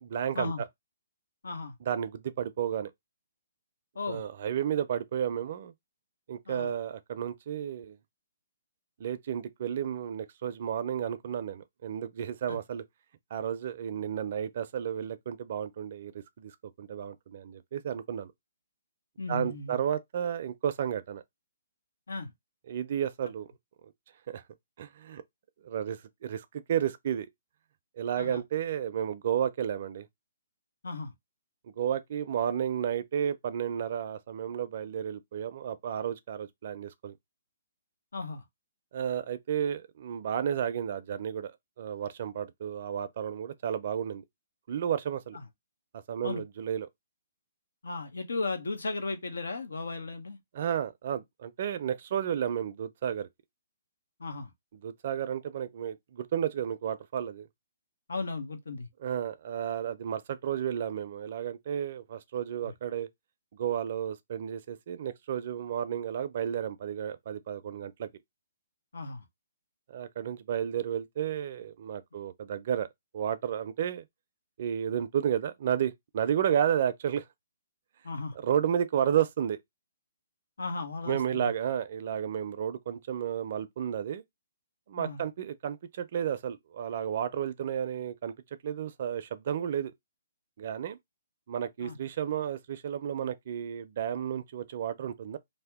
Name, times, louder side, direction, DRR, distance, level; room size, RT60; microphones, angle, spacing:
voice 1, 0.0-0.5 1.8-2.9 4.1-5.7 6.3-8.0 9.0-12.8 13.3-16.5 16.8-18.3 19.3-21.2 22.7-23.5 23.8-23.9 24.3-24.4 24.8-25.2 25.6-27.3 28.0-30.1 31.8-37.2 38.9-44.2 44.7-45.4 46.1-46.9 50.5-53.3 54.8-57.5 59.0-63.1 63.5-68.1 69.9-72.9 73.1-74.0 74.6-77.3 78.4-79.6 81.0-84.2 84.9-88.3 88.6-89.9 90.6-91.0 91.5-95.4, right 9 dB, 45° right, 0.4 m, -32 dB
voice 2, 1.4-1.7 3.9-4.2 6.5-6.7 12.5-12.6 19.2-19.8 22.1-22.3 28.2-28.4 30.8-31.1 38.1-38.4 45.3-45.4 46.2-46.4 47.8-50.4 54.2-54.5 58.1-58.9 62.6-62.7 68.9-69.2 78.0-78.4 80.6-81.5 85.0-85.2 91.8-92.0, left 3 dB, 90° left, 0.9 m, -35 dB
2.7 x 2.0 x 3.5 m
hypercardioid pair, 160°, 0 cm